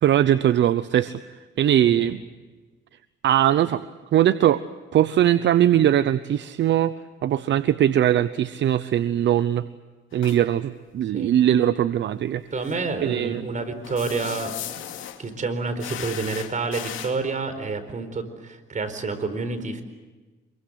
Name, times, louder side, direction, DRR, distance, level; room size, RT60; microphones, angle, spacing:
voice 1, 0.0-1.2 1.6-2.2 3.2-3.8 4.1-4.6 4.9-6.9 7.2-9.7 10.1-12.4 13.0-13.4, right 11 dB, 65° right, 14 dB, 0.8 m, -20 dB
sound 1, 10.1-10.4 12.6-12.8 13.8-15.2 15.8-17.2, left 11 dB, 90° left, 2.5 m, -36 dB
voice 2, 12.5-14.5 15.2-19.8, right 4 dB, 40° right, 9 dB, 4.5 m, -29 dB
26.5 x 23.0 x 8.1 m, 1.3 s
cardioid pair, 90°, 20 cm